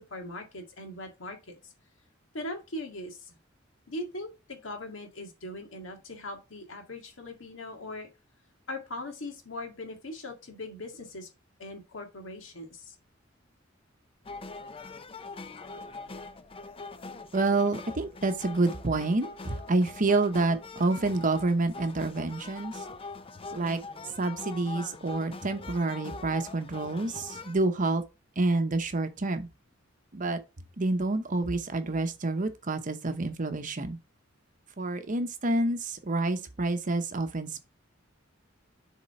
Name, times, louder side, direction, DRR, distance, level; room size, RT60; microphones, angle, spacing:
voice 1, 0.0-1.6 2.3-3.3 3.9-8.1 8.7-11.3 11.6-12.9, left 1 dB, 75° left, 1.9 m, -40 dB
sound 1, 14.3-27.6, left 3 dB, 30° left, 0.5 m, -43 dB
voice 2, 17.3-22.7 23.5-23.8 24.2-28.0 28.4-29.5 30.1-30.4 30.8-34.0 34.8-37.6, right 2 dB, 40° right, 0.8 m, -28 dB
7.3 x 3.7 x 4.3 m
head